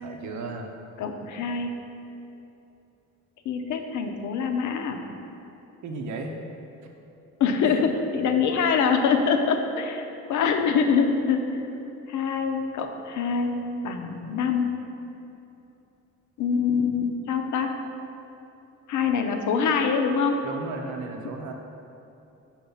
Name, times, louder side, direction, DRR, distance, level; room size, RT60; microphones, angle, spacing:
voice 1, 0.0-0.7 5.8-6.4 7.6-7.7 20.4-21.5, right 3 dB, 70° right, 3 dB, 0.8 m, -34 dB
voice 2, 1.0-1.7 3.4-5.0 7.4-11.6 12.1-14.7 16.4-17.8 18.9-20.4, left 5 dB, 75° left, 5 dB, 0.7 m, -24 dB
5.8 x 4.6 x 5.5 m, 2.9 s
cardioid pair, 90°, 30 cm